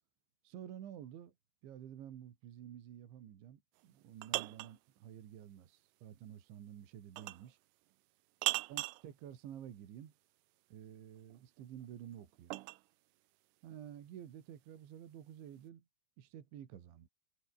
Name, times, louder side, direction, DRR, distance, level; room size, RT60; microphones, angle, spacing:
voice 1, 0.4-1.3 1.6-7.6 8.7-10.1 10.7-12.6 13.6-15.8 16.2-17.1, right 10 dB, 65° right, 4.7 m, -51 dB
sound 1, 3.8-4.8 7.2-7.5 8.4-9.1 11.3-12.8, right 21 dB, 85° right, 3.4 m, -38 dB
omnidirectional pair, 5.9 m